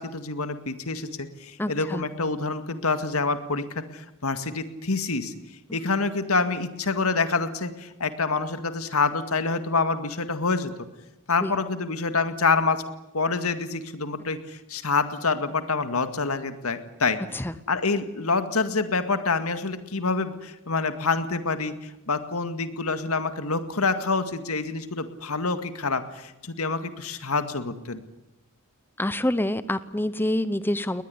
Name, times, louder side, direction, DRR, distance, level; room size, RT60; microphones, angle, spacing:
voice 1, 0.0-5.3 5.7-10.7 11.3-12.8 13.1-17.2 17.7-28.0, left 4 dB, 85° left, 9 dB, 2.1 m, -27 dB
voice 2, 1.6-2.0 11.4-11.5 17.3-17.5 29.0-31.0, left 1 dB, 10° left, 14 dB, 0.8 m, -26 dB
20.5 x 20.0 x 9.8 m, 0.94 s
head